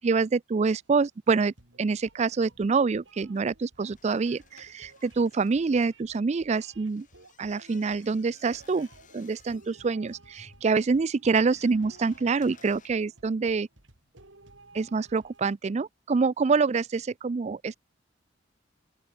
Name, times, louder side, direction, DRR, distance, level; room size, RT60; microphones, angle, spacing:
voice 1, 0.0-7.1 7.4-8.9 9.1-13.7 14.7-17.7, right 4 dB, 35° right, 0.4 m, -26 dB
sound 1, 0.6-15.6, right 2 dB, 85° right, 3.8 m, -56 dB
sound 2, 3.9-6.0 6.8-12.9, left 5 dB, 45° left, 6.9 m, -58 dB
open air
head